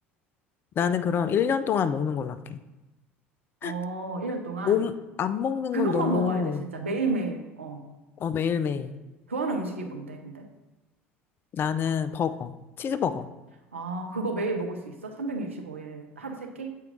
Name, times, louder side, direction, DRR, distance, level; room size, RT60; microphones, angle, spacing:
voice 1, 0.8-2.6 3.6-3.7 4.7-4.9 5.2-6.7 8.2-8.9 11.5-13.3, left 7 dB, 35° left, 11 dB, 0.4 m, -27 dB
voice 2, 3.6-4.8 5.7-7.8 9.3-10.5 13.7-16.8, right 3 dB, 80° right, 3 dB, 0.7 m, -31 dB
7.4 x 4.5 x 3.8 m, 1.1 s
figure-of-eight pair, 65°, 7 cm